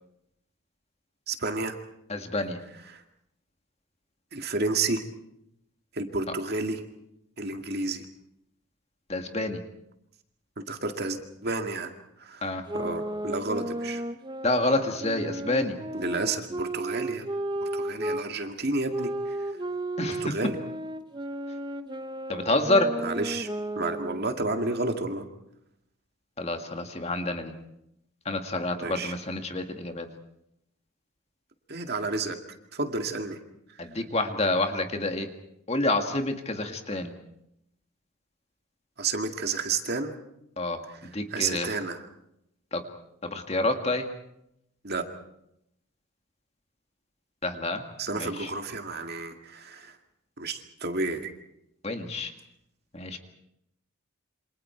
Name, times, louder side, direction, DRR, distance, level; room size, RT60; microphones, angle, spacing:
voice 1, 1.3-1.8 2.9-3.0 4.3-5.0 5.9-6.8 7.4-8.1 10.7-11.9 12.2-12.5 12.7-14.0 15.9-17.3 17.6-19.4 20.1-20.6 23.0-23.5 23.8-25.3 28.8-29.1 31.7-32.4 32.7-33.4 33.7-33.9 39.0-40.1 41.3-42.0 44.8-45.0 48.0-50.0 50.4-51.3, right 3 dB, 45° right, 5 dB, 2.1 m, -31 dB
voice 2, 2.1-2.6 9.1-9.6 12.4-12.6 14.4-15.8 20.0-20.3 22.3-22.9 26.4-27.5 28.3-30.1 33.8-35.3 35.7-37.1 40.6-40.8 41.1-41.7 42.7-42.8 43.2-44.1 47.4-47.8 48.2-48.5 51.8-52.3 52.9-53.2, left 2 dB, 30° left, 5 dB, 2.0 m, -28 dB
sound 1, 12.7-18.2 18.9-24.4, right 1 dB, 20° right, 0.9 m, -34 dB
28.0 x 26.0 x 4.6 m, 0.78 s
head